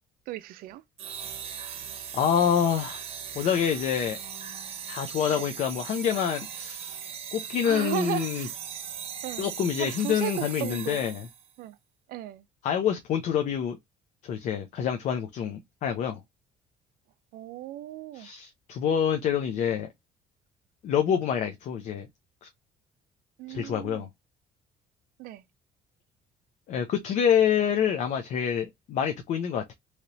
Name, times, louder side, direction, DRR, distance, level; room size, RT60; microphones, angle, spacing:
voice 1, 0.3-0.8 5.3-5.5 7.6-8.5 9.2-9.5 9.8-11.0 11.6-11.8 12.1-12.4 17.3-18.3 23.4-24.1 25.2-25.4, right 15 dB, 70° right, 0.4 m, -35 dB
sound 1, 1.0-11.5, right 8 dB, 40° right, 0.7 m, -39 dB
voice 2, 2.1-3.0 3.3-4.2 4.9-7.0 7.3-8.5 9.4-11.3 12.6-13.8 14.2-16.2 18.1-19.9 20.8-22.1 22.4-22.5 23.5-24.1 26.7-29.7, left 8 dB, 50° left, 0.5 m, -27 dB
3.2 x 2.9 x 2.6 m
cardioid pair, 165°, 15 cm